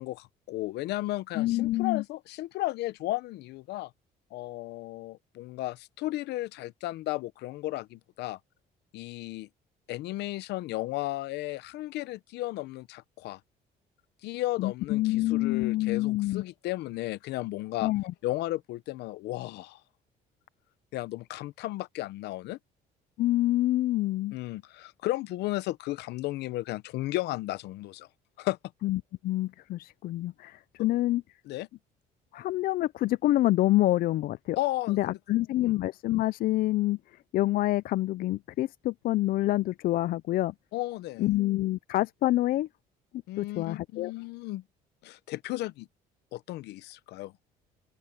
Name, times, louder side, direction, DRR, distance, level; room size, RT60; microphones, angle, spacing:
voice 1, 0.0-3.9 4.3-8.4 8.9-9.5 9.9-13.4 14.2-17.9 18.2-19.8 20.9-22.6 24.3-28.1 28.4-28.6 31.5-31.7 34.6-35.2 35.6-35.7 40.7-41.3 43.3-44.6 45.0-45.9 46.3-47.3, left 17 dB, 80° left, 0.8 m, -34 dB
voice 2, 1.4-2.0 14.6-16.4 17.8-18.1 23.2-24.3 28.8-31.2 32.3-34.6 34.9-37.0 37.3-40.5 41.2-42.7 43.4-44.1, left 16 dB, 60° left, 0.4 m, -27 dB
open air
cardioid pair, 110°, 17 cm